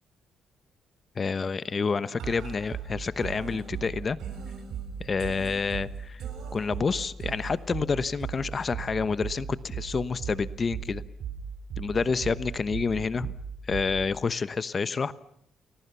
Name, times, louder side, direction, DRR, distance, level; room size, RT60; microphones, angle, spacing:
voice 1, 1.2-4.2 5.0-6.2 6.5-11.0 11.8-13.3 13.7-15.1, left 5 dB, 35° left, 15 dB, 1.0 m, -28 dB
sound 1, 2.2-14.2, right 7 dB, 75° right, 7.1 m, -38 dB
30.0 x 21.5 x 6.9 m, 0.73 s
cardioid pair, 120°, 0 cm